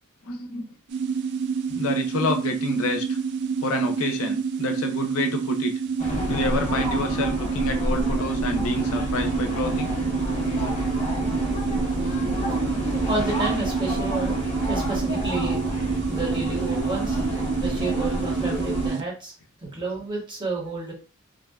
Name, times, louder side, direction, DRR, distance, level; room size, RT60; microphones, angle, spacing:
voice 1, 0.2-0.7 1.7-3.2 3.6-5.7 6.3-9.9 19.7-19.8, left 2 dB, 90° left, 5 dB, 0.4 m, -29 dB
sound 1, 0.9-19.0, right 6 dB, 55° right, 0.3 m, -28 dB
sound 2, 6.0-18.9, left 1 dB, 35° left, 0.7 m, -29 dB
voice 2, 13.1-14.3 14.7-15.7 16.1-17.2 17.6-19.3 19.6-20.9, right 2 dB, 25° right, -3 dB, 0.9 m, -30 dB
2.5 x 2.2 x 2.3 m, 0.34 s
head